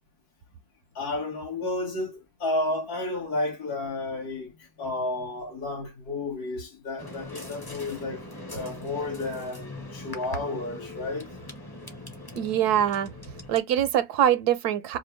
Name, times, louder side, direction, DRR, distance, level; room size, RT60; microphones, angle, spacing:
voice 1, 1.0-4.5 4.8-8.2 8.5-11.3, left 2 dB, 75° left, 2.1 m, -32 dB
sound 1, 7.0-13.6, left 1 dB, 20° left, 0.8 m, -41 dB
voice 2, 12.4-13.1 13.5-15.0, right 10 dB, 80° right, 1.2 m, -23 dB
5.2 x 2.2 x 3.2 m
omnidirectional pair, 1.6 m